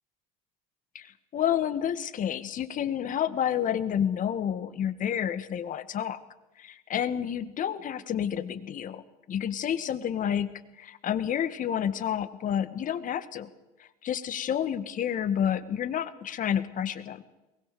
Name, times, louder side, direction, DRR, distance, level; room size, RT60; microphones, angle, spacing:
voice 1, 0.9-6.2 6.6-9.0 9.3-10.5 10.8-13.5 13.8-17.2, left 9 dB, 45° left, 12 dB, 1.9 m, -29 dB
22.5 x 20.0 x 7.0 m, 1.0 s
hypercardioid pair, 85°, 19 cm